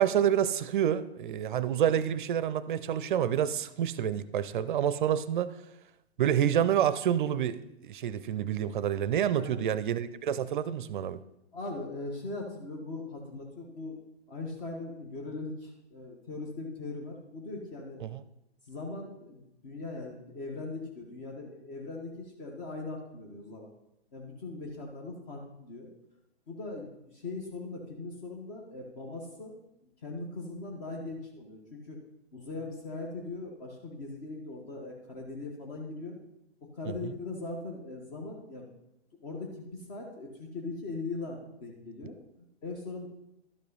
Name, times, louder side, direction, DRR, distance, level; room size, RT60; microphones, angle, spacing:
voice 1, 0.0-5.6 6.2-11.2 18.0-18.2 36.9-37.0, right 9 dB, 50° right, 16 dB, 0.5 m, -28 dB
voice 2, 9.3-9.7 11.5-14.0 14.3-18.0 18.7-23.7 24.1-25.9 26.5-29.6 30.0-32.0 32.3-36.2 36.7-38.7 39.2-43.1, left 3 dB, 40° left, 0 dB, 1.4 m, -40 dB
12.0 x 5.3 x 4.0 m, 0.85 s
figure-of-eight pair, 115°, 33 cm